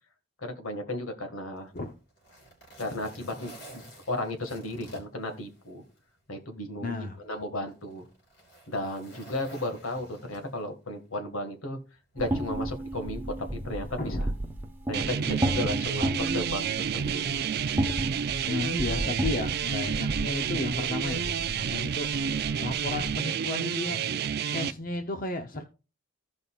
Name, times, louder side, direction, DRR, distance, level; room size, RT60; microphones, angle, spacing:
voice 1, 0.4-1.7 2.8-5.8 6.3-8.0 8.7-11.8 12.1-13.3 13.6-14.3 14.9-17.4, left 1 dB, 75° left, 5 dB, 1.7 m, -34 dB
Zipper (clothing), 1.6-6.0 6.4-6.5 7.3-10.8 11.9-12.1, right 1 dB, 55° left, 3.7 m, -50 dB
voice 2, 6.8-7.2 14.0-14.2 18.5-24.2 24.5-25.6, left 2 dB, 40° left, 5 dB, 0.7 m, -34 dB
sound 1, 12.2-23.2, right 1 dB, 10° right, 1.0 m, -33 dB
sound 2, 14.9-24.7, right 7 dB, 50° right, 0.4 m, -30 dB
15.5 x 5.3 x 2.4 m, 0.32 s
head